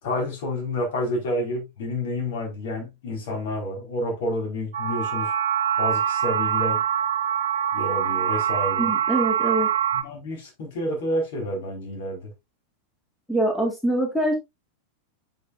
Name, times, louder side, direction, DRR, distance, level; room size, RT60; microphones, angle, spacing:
voice 1, 0.0-5.3 5.8-6.8 7.7-8.9 9.9-12.3, left 1 dB, 55° left, 4.7 m, -29 dB
sound 1, 4.7-10.0, right 9 dB, 60° right, 1.1 m, -24 dB
voice 2, 8.8-9.7 13.3-14.3, right 1 dB, 5° left, 2.0 m, -24 dB
8.6 x 6.5 x 2.6 m
figure-of-eight pair, 90°, 0 cm